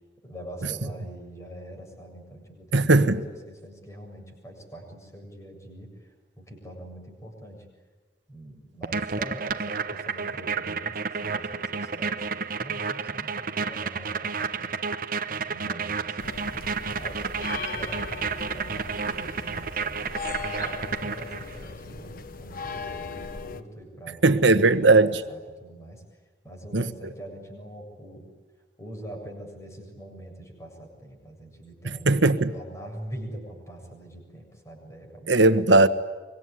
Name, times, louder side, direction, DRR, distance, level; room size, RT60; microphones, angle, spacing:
voice 1, 0.2-6.1 6.4-7.7 8.3-14.7 15.3-20.0 20.6-26.0 26.4-28.3 28.8-32.2 32.5-35.3, right 1 dB, 15° left, 7.5 m, -43 dB
voice 2, 2.7-3.2 24.2-25.2 26.7-26.9 31.8-32.5 35.3-35.9, right 2 dB, 85° right, 1.4 m, -18 dB
sound 1, 8.8-21.6, right 5 dB, 50° right, 1.0 m, -31 dB
sound 2, 16.2-23.6, left 4 dB, 50° left, 1.3 m, -38 dB
25.5 x 24.0 x 9.9 m
head